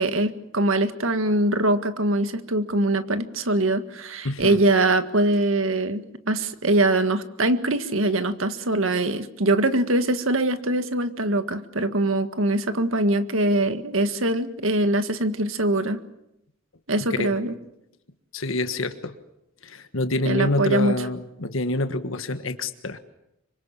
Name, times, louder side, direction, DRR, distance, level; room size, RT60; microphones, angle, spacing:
voice 1, 0.0-16.0 16.9-17.5 20.2-20.9, right 2 dB, 80° right, 10 dB, 1.8 m, -23 dB
voice 2, 4.2-4.6 17.2-17.3 18.3-19.1 19.6-23.0, left 2 dB, 75° left, 9 dB, 1.5 m, -27 dB
26.0 x 24.5 x 7.3 m, 0.84 s
head